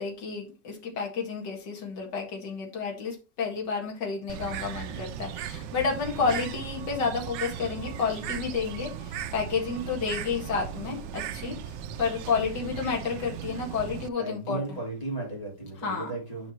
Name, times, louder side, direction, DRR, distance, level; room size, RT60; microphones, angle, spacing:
voice 1, 0.0-14.6 15.8-16.1, left 5 dB, 80° left, -1 dB, 2.5 m, -31 dB
Bird, 4.3-14.1, right 9 dB, 85° right, 1.4 m, -37 dB
voice 2, 14.2-16.5, right 2 dB, 20° left, -3 dB, 3.9 m, -35 dB
11.0 x 5.6 x 3.1 m, 0.30 s
omnidirectional pair, 1.9 m